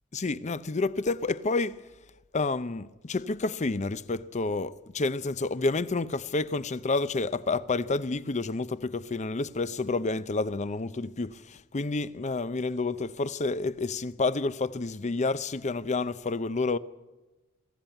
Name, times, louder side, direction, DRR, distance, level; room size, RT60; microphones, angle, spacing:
voice 1, 0.1-1.8 2.3-16.8, left 3 dB, 35° left, 0.6 m, -29 dB
21.5 x 15.0 x 9.1 m
head